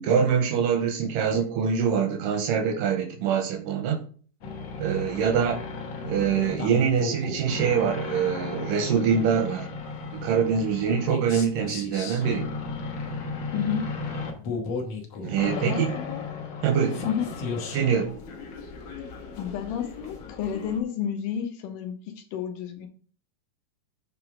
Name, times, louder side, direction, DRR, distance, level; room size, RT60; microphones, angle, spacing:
voice 1, 0.0-4.0 4.8-5.6 6.0-9.7 10.1-12.5 15.2-15.9 16.6-17.1 17.7-18.2, right 7 dB, 80° right, 7 dB, 2.0 m, -24 dB
sound 1, 4.4-20.8, left 4 dB, 65° left, 1.6 m, -35 dB
voice 2, 13.5-13.9 15.4-16.2 17.0-17.3 19.4-22.9, left 8 dB, 80° left, 5 dB, 2.1 m, -31 dB
7.0 x 3.3 x 5.9 m, 0.43 s
omnidirectional pair, 4.2 m